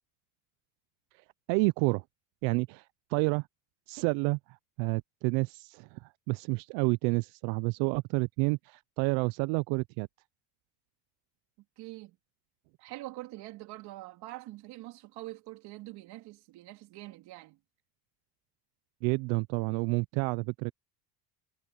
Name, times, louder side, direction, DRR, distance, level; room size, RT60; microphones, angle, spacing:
voice 1, 1.5-2.0 2.4-3.5 3.9-10.1 19.0-20.7, right 28 dB, 90° right, 0.5 m, -29 dB
voice 2, 11.8-12.2 12.8-17.6, right 18 dB, 60° right, 3.4 m, -44 dB
cardioid pair, 165°, 43 cm